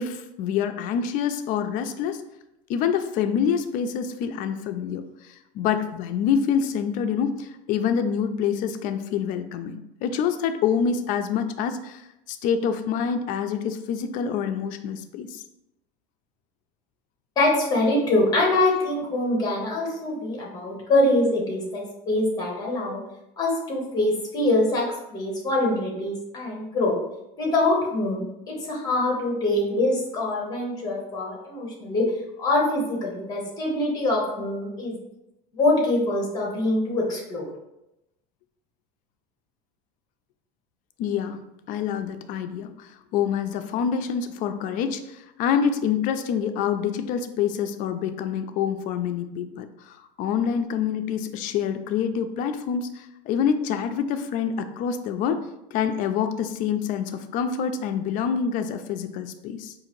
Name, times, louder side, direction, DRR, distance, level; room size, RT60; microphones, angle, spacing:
voice 1, 0.0-2.2 2.7-15.4 41.0-41.4 41.7-55.4 55.7-59.7, left 7 dB, 50° left, 9 dB, 0.4 m, -26 dB
voice 2, 17.4-23.0 23.4-24.8 25.1-26.9 27.4-32.0 32.4-34.9 35.5-37.5, left 2 dB, 20° left, -1 dB, 1.1 m, -24 dB
4.8 x 2.5 x 3.0 m, 0.88 s
cardioid pair, 155°, 18 cm